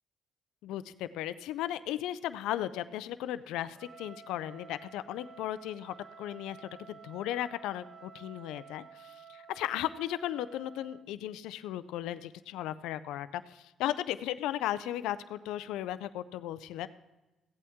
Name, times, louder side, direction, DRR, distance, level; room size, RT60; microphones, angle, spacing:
voice 1, 0.6-16.9, left 12 dB, 85° left, 14 dB, 0.4 m, -36 dB
Trumpet, 3.7-11.1, right 7 dB, 55° right, 0.4 m, -52 dB
15.5 x 8.5 x 3.6 m, 1.0 s
supercardioid pair, 70°, 0 cm